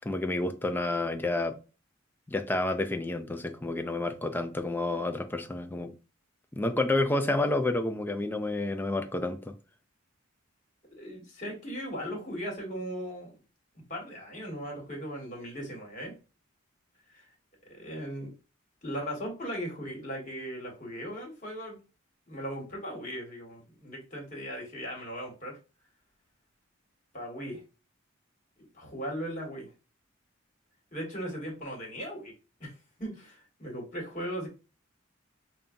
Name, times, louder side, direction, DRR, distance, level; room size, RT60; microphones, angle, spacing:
voice 1, 0.0-1.6 2.3-5.9 6.5-9.5, left 2 dB, 10° left, 0.3 m, -29 dB
voice 2, 10.9-13.4 13.9-16.1 17.1-17.2 17.7-18.3 18.8-21.8 22.3-25.6 27.1-27.6 28.7-29.7 30.9-32.3 32.6-32.7 33.0-34.5, equal, 40° left, 1.5 m, -38 dB
5.4 x 2.3 x 2.5 m
head